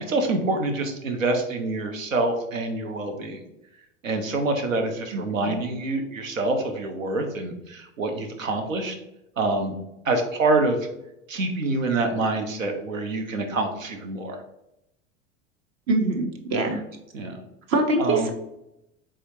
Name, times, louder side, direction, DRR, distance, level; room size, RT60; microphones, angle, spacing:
voice 1, 0.0-3.4 4.0-8.9 9.4-9.7 10.0-10.8 11.3-14.4 17.1-17.4 18.0-18.3, right 2 dB, 85° right, 5 dB, 0.8 m, -26 dB
voice 2, 5.1-5.6 15.9-16.8 17.7-18.3, right 2 dB, 40° right, 4 dB, 0.8 m, -24 dB
4.3 x 3.7 x 2.7 m, 0.86 s
figure-of-eight pair, 80°, 39 cm